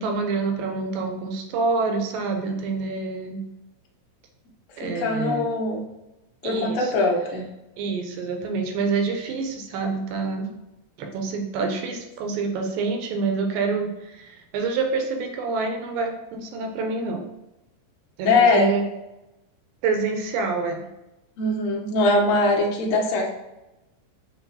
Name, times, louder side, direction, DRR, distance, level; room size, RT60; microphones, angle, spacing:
voice 1, 0.0-3.4 4.8-5.5 6.4-6.9 7.8-10.5 11.0-17.2 18.2-18.8 19.8-20.9, right 4 dB, 80° right, 3 dB, 2.2 m, -27 dB
voice 2, 4.8-5.8 6.4-7.5 18.2-18.7 21.4-23.3, left 2 dB, 75° left, -2 dB, 1.5 m, -21 dB
6.9 x 2.3 x 2.7 m, 0.95 s
omnidirectional pair, 4.2 m